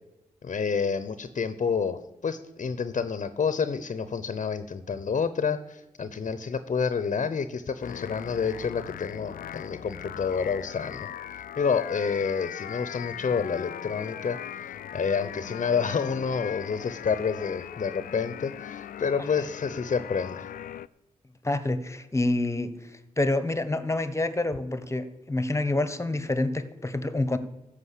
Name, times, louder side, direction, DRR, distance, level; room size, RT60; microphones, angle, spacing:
voice 1, 0.4-11.1 11.6-20.5, left 6 dB, 55° left, 12 dB, 0.8 m, -29 dB
sound 1, 7.8-20.9, left 10 dB, 80° left, 0.4 m, -39 dB
voice 2, 21.4-22.7 23.2-27.4, left 2 dB, 20° left, 12 dB, 1.1 m, -27 dB
14.0 x 5.2 x 8.3 m, 0.97 s
cardioid pair, 55°, 15 cm